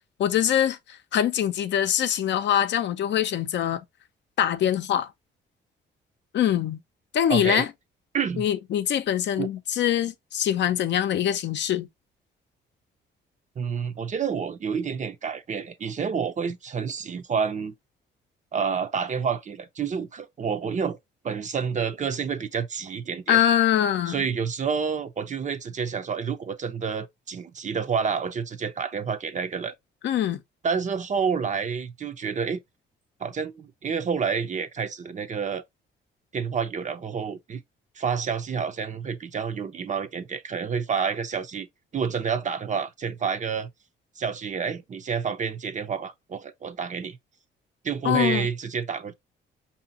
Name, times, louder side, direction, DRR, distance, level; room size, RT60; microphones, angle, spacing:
voice 1, 0.2-3.8 4.4-5.1 6.3-6.8 7.1-7.7 8.4-11.9 23.3-24.3 30.0-30.4 48.0-48.5, left 10 dB, 65° left, 0.6 m, -23 dB
voice 2, 7.3-7.7 8.1-8.4 9.4-9.5 13.6-17.7 18.5-21.0 21.2-23.4 24.1-29.7 30.6-32.6 33.2-35.6 36.3-37.6 38.0-41.7 41.9-43.7 44.2-47.2 47.8-49.1, right 6 dB, 40° right, 0.6 m, -29 dB
4.9 x 2.8 x 2.7 m
cardioid pair, 90°, 20 cm